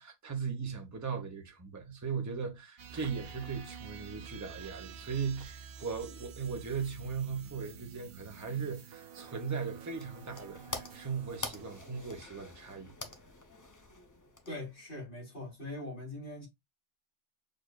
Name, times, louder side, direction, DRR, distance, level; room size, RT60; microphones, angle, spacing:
voice 1, 0.0-12.9, right 6 dB, 15° right, 0.9 m, -38 dB
sound 1, 2.8-12.1, right 7 dB, 60° right, 0.8 m, -49 dB
sound 2, 9.5-14.9, left 2 dB, 25° left, 0.5 m, -46 dB
voice 2, 14.5-16.5, left 1 dB, 65° left, 3.2 m, -42 dB
6.5 x 2.6 x 2.3 m
omnidirectional pair, 1.2 m